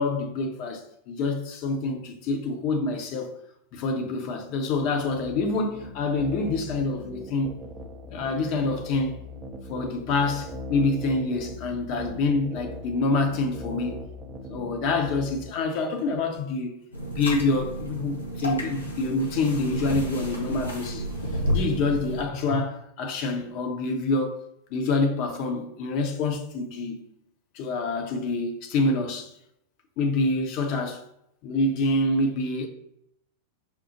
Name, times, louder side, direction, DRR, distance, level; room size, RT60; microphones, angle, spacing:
voice 1, 0.0-3.3 3.7-7.5 8.1-9.2 9.7-14.0 14.5-16.8 17.1-21.1 21.5-24.4 24.7-27.0 27.5-29.3 30.0-31.0 31.4-32.7, left 3 dB, 45° left, 0.6 m, -26 dB
sound 1, 4.8-15.5, equal, 20° right, 0.4 m, -40 dB
sound 2, 16.9-22.2, right 1 dB, 80° left, 0.7 m, -31 dB
5.7 x 2.0 x 2.8 m
figure-of-eight pair, 90°, 0 cm